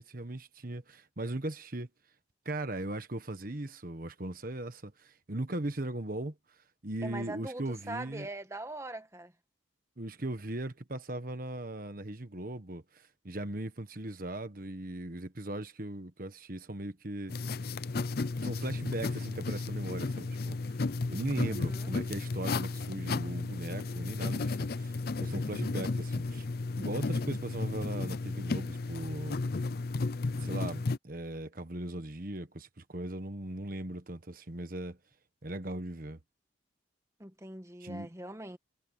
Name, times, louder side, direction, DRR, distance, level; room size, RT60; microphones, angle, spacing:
voice 1, 0.0-1.9 2.4-8.3 10.0-17.3 18.4-20.6 21.1-26.5 26.8-29.4 30.4-35.0 35.4-36.2 37.8-38.1, right 1 dB, 45° right, 1.3 m, -38 dB
voice 2, 7.0-9.3 21.4-21.9 37.2-38.6, right 2 dB, 15° right, 1.4 m, -42 dB
sound 1, 17.3-31.0, left 3 dB, 50° left, 0.5 m, -33 dB
head